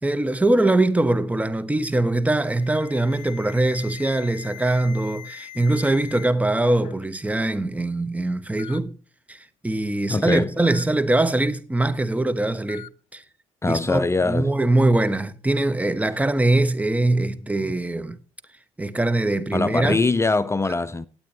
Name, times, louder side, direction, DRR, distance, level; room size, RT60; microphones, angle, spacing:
voice 1, 0.0-8.9 9.3-12.9 13.1-13.2 13.7-18.2 18.8-20.0, right 2 dB, 10° right, 1.1 m, -22 dB
Alarm, 2.3-6.3 6.6-7.0 7.9-8.0 8.6-8.8 10.6-10.8 12.7-12.9, left 12 dB, 60° left, 0.8 m, -41 dB
voice 2, 10.1-10.5 13.6-14.5 17.6-17.7 19.5-21.1, left 3 dB, 20° left, 0.6 m, -23 dB
18.5 x 8.7 x 2.8 m
hypercardioid pair, 50°, 14 cm